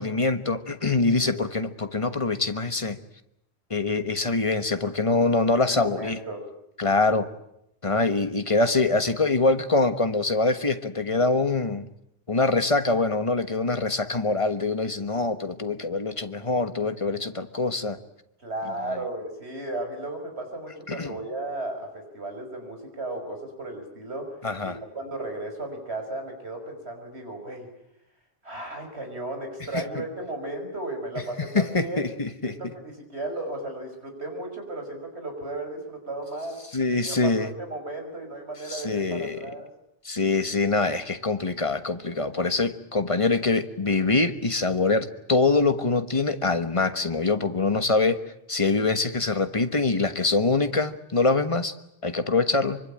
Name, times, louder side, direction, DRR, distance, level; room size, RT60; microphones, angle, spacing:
voice 1, 0.0-3.0 3.7-6.2 6.8-7.3 7.8-11.8 12.3-18.0 18.9-19.0 20.9-21.1 24.4-24.8 29.7-29.8 31.5-32.7 36.7-37.5 38.6-39.5 40.0-48.2 48.5-51.7 52.0-52.8, left 3 dB, 30° left, 9 dB, 1.4 m, -24 dB
voice 2, 1.1-1.5 5.7-6.5 18.4-24.4 24.6-27.7 28.4-32.1 32.4-36.6 36.9-39.7, right 2 dB, 65° right, 4 dB, 5.9 m, -35 dB
24.5 x 24.5 x 8.8 m, 0.79 s
omnidirectional pair, 1.2 m